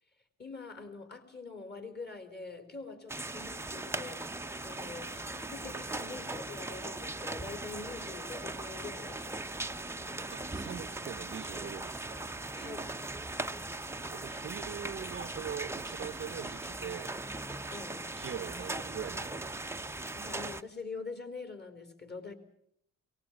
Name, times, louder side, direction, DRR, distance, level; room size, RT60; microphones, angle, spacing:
voice 1, 0.4-4.3 4.6-9.4 12.5-12.9 17.7-18.1 20.1-22.3, left 4 dB, 35° left, 9 dB, 4.5 m, -44 dB
sound 1, 3.1-20.6, right 2 dB, 10° right, 0.8 m, -39 dB
sound 2, 10.0-13.9, left 1 dB, 90° left, 3.5 m, -66 dB
voice 2, 10.3-12.2 14.1-17.2 18.2-19.8, right 8 dB, 40° right, 14 dB, 0.8 m, -42 dB
22.5 x 19.5 x 7.4 m, 0.74 s
cardioid pair, 90°, 30 cm